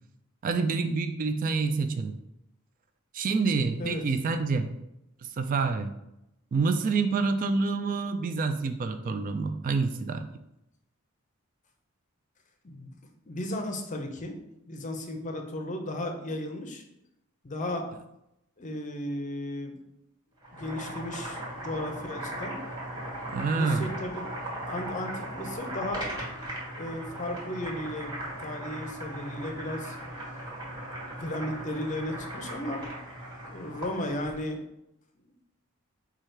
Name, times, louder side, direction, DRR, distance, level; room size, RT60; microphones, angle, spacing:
voice 1, 0.4-2.1 3.1-4.7 5.2-5.9 6.5-10.3 23.3-23.9, right 4 dB, 40° right, 8 dB, 0.3 m, -27 dB
voice 2, 13.3-16.8 17.4-17.9 18.6-19.8 20.5-22.6 23.6-24.3 24.6-26.1 26.7-28.1 28.4-30.0 31.2-32.8 33.4-34.6, left 1 dB, 35° left, 4 dB, 0.6 m, -35 dB
Boiling, 20.4-34.4, right 1 dB, 20° right, 1.4 m, -38 dB
4.8 x 2.4 x 4.4 m, 0.85 s
head